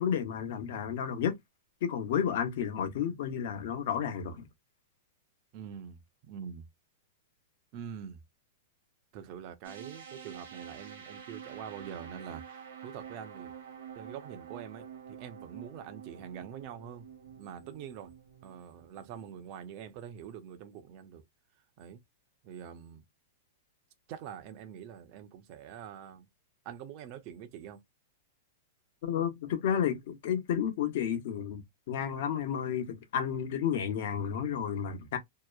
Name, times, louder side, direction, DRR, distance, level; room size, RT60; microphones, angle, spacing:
voice 1, 0.0-1.4 1.8-4.5 29.0-35.2, left 8 dB, 60° left, 0.8 m, -31 dB
voice 2, 5.5-6.7 7.7-8.2 9.1-13.5 14.0-17.1 17.4-18.1 18.4-21.2 21.8-22.0 22.4-23.0 24.1-26.3 26.6-27.8 34.3-34.6, right 8 dB, 40° right, 0.5 m, -45 dB
sound 1, 9.6-19.5, right 8 dB, 70° right, 1.0 m, -48 dB
2.8 x 2.0 x 2.3 m
supercardioid pair, 150°, 0 cm